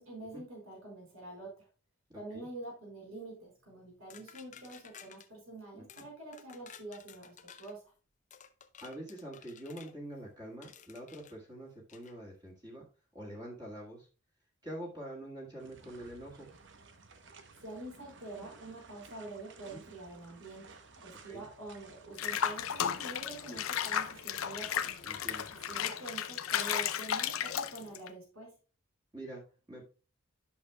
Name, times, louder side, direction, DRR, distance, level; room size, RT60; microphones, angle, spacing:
voice 1, 0.0-1.7 2.1-7.8 17.6-20.7 20.9-24.9 25.7-28.5, right 2 dB, 80° right, -1 dB, 4.5 m, -46 dB
voice 2, 2.1-2.5 5.7-6.1 8.8-12.9 13.1-14.1 14.6-16.5 19.7-19.8 21.2-21.5 23.5-23.6 25.0-25.5 29.1-29.4 29.7-29.8, right 1 dB, 20° right, -3 dB, 1.8 m, -45 dB
sound 1, 4.1-5.3 5.9-6.1 6.3-7.8 8.3-9.9 10.6-11.3 11.9-12.1, left 8 dB, 35° left, 0.6 m, -54 dB
sound 2, 15.6-25.8, right 4 dB, 60° right, 0.9 m, -56 dB
Water / Bathtub (filling or washing), 22.2-28.1, left 9 dB, 85° left, 0.6 m, -34 dB
11.0 x 6.1 x 2.3 m, 0.35 s
head